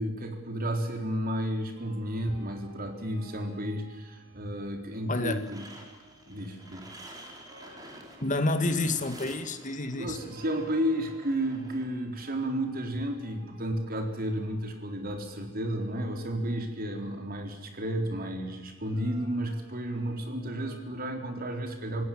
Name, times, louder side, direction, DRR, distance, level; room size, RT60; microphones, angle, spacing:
voice 1, 0.0-5.6 6.3-6.9 9.9-22.0, right 1 dB, 50° right, 4 dB, 4.0 m, -32 dB
sound 1, 1.8-20.8, right 2 dB, 75° right, 5.8 m, -56 dB
voice 2, 5.1-5.5 8.2-10.2, left 2 dB, 40° left, 8 dB, 2.2 m, -29 dB
sound 2, 5.4-11.8, right 1 dB, 20° right, 4.6 m, -49 dB
27.0 x 17.5 x 7.6 m, 1.1 s
head